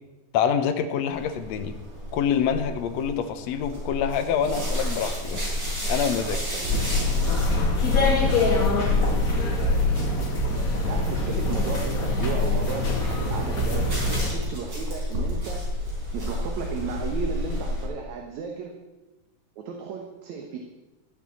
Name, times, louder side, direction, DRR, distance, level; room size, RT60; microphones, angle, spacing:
voice 1, 0.3-1.8 2.1-5.4 5.9-6.4, left 8 dB, 70° left, 7 dB, 2.0 m, -26 dB
sound 1, 1.1-17.8, equal, 35° right, 4.9 m, -32 dB
voice 2, 6.2-6.8 8.8-9.3 10.9-15.7 16.1-18.8 19.6-20.6, right 6 dB, 70° right, 2 dB, 2.4 m, -34 dB
sound 2, 6.7-14.3, left 2 dB, 30° left, 2.2 m, -24 dB
12.5 x 7.8 x 8.4 m, 1.1 s
omnidirectional pair, 3.5 m